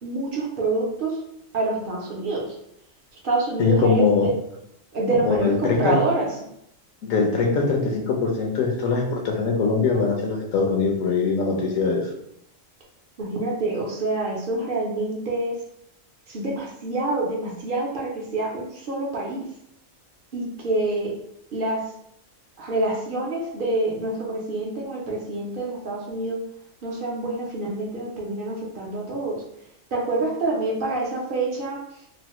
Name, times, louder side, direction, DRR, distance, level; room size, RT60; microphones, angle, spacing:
voice 1, 0.0-1.2 1.5-2.6 3.2-4.3 4.9-6.3 13.2-15.6 16.3-19.5 20.3-21.1 21.5-21.8 22.6-26.4 26.8-29.4 29.9-31.8, right 2 dB, 55° right, -3 dB, 0.6 m, -26 dB
voice 2, 3.6-4.3 5.1-6.0 7.0-12.1, left 4 dB, 80° left, 1 dB, 1.0 m, -22 dB
3.0 x 2.1 x 2.9 m, 0.77 s
omnidirectional pair, 1.4 m